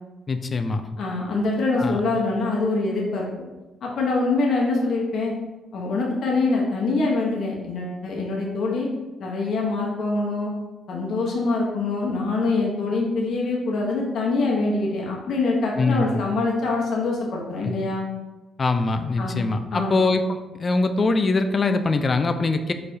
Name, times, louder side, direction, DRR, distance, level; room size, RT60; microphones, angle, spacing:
voice 1, 0.3-0.8 1.8-2.0 15.8-16.2 18.6-22.7, left 3 dB, 35° left, 8 dB, 0.4 m, -22 dB
voice 2, 1.0-3.3 3.8-5.3 5.7-8.9 9.2-10.5 10.9-18.0 19.2-19.4 19.7-20.0, left 3 dB, 65° left, -2 dB, 0.9 m, -24 dB
4.4 x 3.2 x 2.7 m, 1.1 s
cardioid pair, 90°, 0 cm